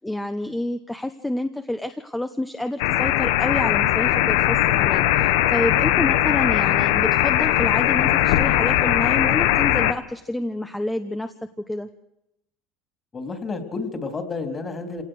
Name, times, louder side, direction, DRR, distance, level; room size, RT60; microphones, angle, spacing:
voice 1, 0.0-11.9, left 1 dB, 5° left, 8 dB, 1.1 m, -29 dB
sound 1, 2.8-9.9, left 13 dB, 85° left, 1.1 m, -20 dB
voice 2, 5.7-6.0 13.1-15.0, left 4 dB, 25° left, 6 dB, 3.6 m, -31 dB
27.0 x 18.0 x 6.5 m, 0.83 s
supercardioid pair, 115°, 0 cm